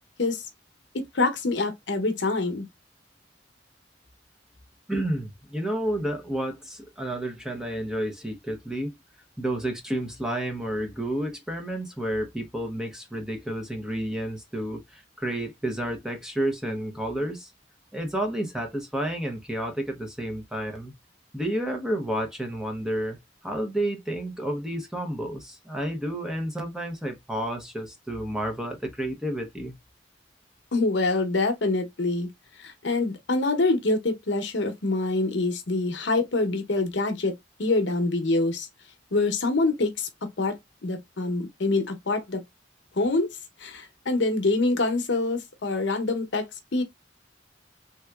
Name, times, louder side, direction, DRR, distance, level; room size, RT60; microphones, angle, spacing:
voice 1, 0.9-2.7 30.7-32.3 32.6-38.7 39.1-40.1 40.4-40.6 40.8-42.4 43.0-43.3 43.6-46.8, left 2 dB, 75° left, 0.8 m, -25 dB
voice 2, 4.9-8.9 9.4-17.5 17.9-20.9 21.3-23.2 23.4-29.8, right 1 dB, 5° right, 0.7 m, -30 dB
3.4 x 2.9 x 2.3 m
head